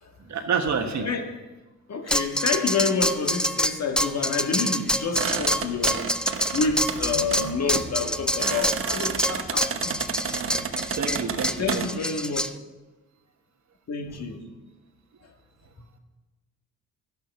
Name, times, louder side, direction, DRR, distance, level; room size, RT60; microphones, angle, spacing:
voice 1, 0.2-1.1 7.4-7.5 11.0-11.8, right 6 dB, 60° right, 1.4 m, -28 dB
voice 2, 1.9-6.1 6.5-10.0 11.6-12.4 13.9-14.4 15.8-15.9, left 4 dB, 50° left, 1.8 m, -28 dB
sound 1, 2.1-12.5, equal, 5° left, 0.5 m, -26 dB
sound 2, 5.2-11.9, right 6 dB, 40° right, 1.0 m, -32 dB
12.5 x 10.5 x 5.9 m
cardioid pair, 85°, 32 cm